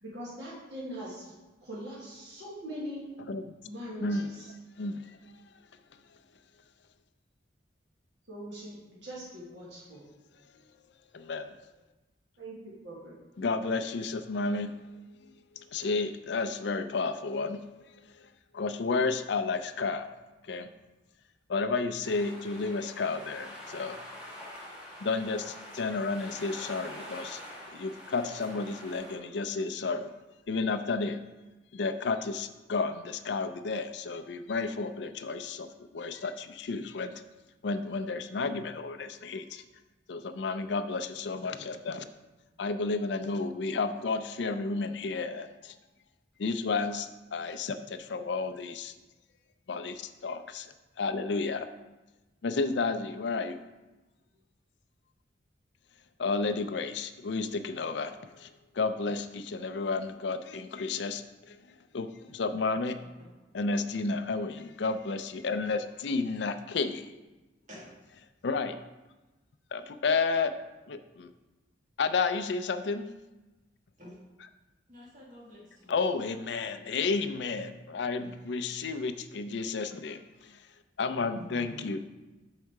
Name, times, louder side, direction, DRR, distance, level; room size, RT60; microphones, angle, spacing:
voice 1, 0.0-1.3 1.6-3.1 3.6-4.5 8.3-10.0 12.4-13.1, equal, 65° right, -6 dB, 1.6 m, -42 dB
voice 2, 4.8-5.2 11.1-11.6 13.4-14.9 15.6-17.6 18.5-20.1 20.4-20.7 21.5-24.0 25.0-27.4 27.7-30.1 30.5-31.2 31.7-37.2 37.6-39.6 40.1-42.1 42.6-45.7 46.4-48.9 49.7-51.7 52.4-53.6 56.2-58.5 58.7-61.6 61.9-63.0 63.5-67.1 68.4-68.8 69.7-70.5 70.9-71.3 72.0-73.1 74.4-74.5 75.9-80.2 80.5-80.6 81.0-82.0, left 4 dB, 65° left, 9 dB, 0.4 m, -32 dB
sound 1, 22.0-29.1, left 1 dB, 5° right, 1.6 m, -45 dB
voice 3, 74.9-75.9 77.5-77.6 78.2-78.3 81.3-81.9, equal, 40° right, -6 dB, 1.6 m, -48 dB
6.4 x 4.8 x 4.6 m, 1.1 s
head